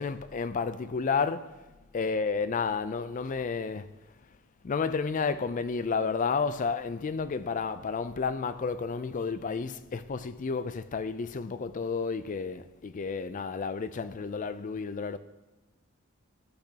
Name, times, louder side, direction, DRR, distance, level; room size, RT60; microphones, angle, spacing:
voice 1, 0.0-1.5 1.9-3.9 4.6-15.2, left 5 dB, 40° left, 0.4 m, -31 dB
12.0 x 8.1 x 2.8 m
head